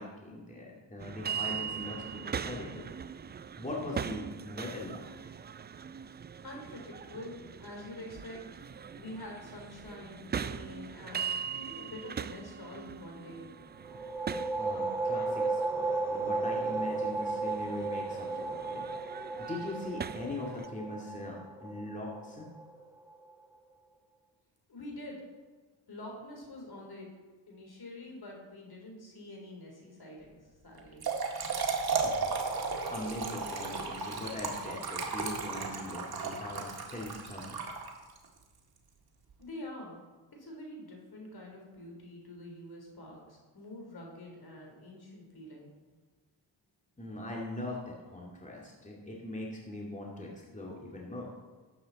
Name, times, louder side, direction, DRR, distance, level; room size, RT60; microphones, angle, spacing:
voice 1, 0.0-2.9 3.6-5.3 14.6-18.9 19.5-22.5 32.0-32.3 32.7-37.6 47.0-51.3, left 1 dB, 15° left, -3 dB, 2.3 m, -41 dB
sound 1, 1.0-20.7, right 7 dB, 25° right, 0.3 m, -41 dB
voice 2, 6.4-13.5 24.7-25.3 25.9-27.1 27.5-31.0 39.4-40.0 40.4-45.7, left 1 dB, 50° left, -1 dB, 4.0 m, -46 dB
sound 2, 13.8-23.2, right 3 dB, 5° right, 1.3 m, -34 dB
Trickle dribble / Fill (with liquid), 30.8-38.2, right 4 dB, 50° right, 2.0 m, -34 dB
12.0 x 8.6 x 4.2 m, 1.3 s
cardioid pair, 60°, 47 cm